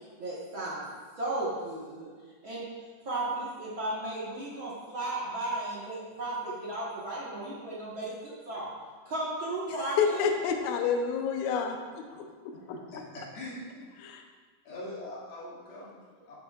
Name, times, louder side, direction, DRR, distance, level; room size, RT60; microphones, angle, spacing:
voice 1, 0.2-0.8 1.2-2.1 2.4-2.6 3.0-8.7 9.1-10.2, right 2 dB, 55° right, -7 dB, 1.3 m, -34 dB
voice 2, 10.0-12.3 14.0-14.2, left 6 dB, 90° left, 4 dB, 1.6 m, -28 dB
voice 3, 12.1-13.9 14.6-16.4, left 1 dB, 75° left, -7 dB, 4.0 m, -43 dB
10.5 x 10.0 x 2.4 m, 1.5 s
omnidirectional pair, 4.4 m